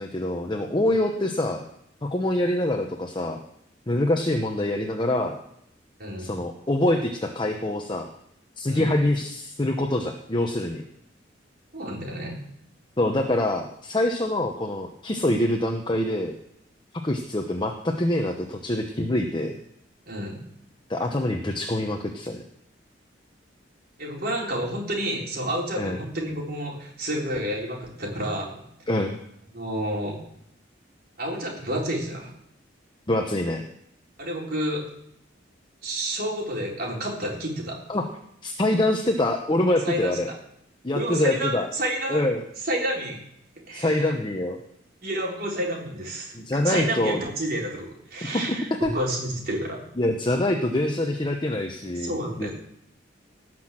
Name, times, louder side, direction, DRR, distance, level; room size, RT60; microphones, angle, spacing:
voice 1, 0.0-1.6 2.0-3.4 3.9-5.4 6.2-8.1 8.6-10.8 13.0-16.3 17.0-19.6 20.9-22.4 25.8-26.0 28.9-29.2 33.1-33.6 37.9-38.1 38.4-40.3 40.8-41.7 42.1-42.4 43.7-44.6 46.3-47.2 48.3-48.6 48.8-48.9 50.0-52.5, left 1 dB, 25° left, 3 dB, 0.9 m, -25 dB
voice 2, 6.0-6.3 8.7-8.9 11.7-12.3 20.1-20.4 24.0-28.6 29.5-30.2 31.2-32.3 34.2-34.8 35.8-37.8 39.8-40.2 40.9-42.2 42.6-43.2 43.7-44.1 45.0-49.8 52.0-52.5, right 1 dB, 50° right, -2 dB, 4.1 m, -30 dB
18.5 x 6.2 x 7.5 m, 0.75 s
head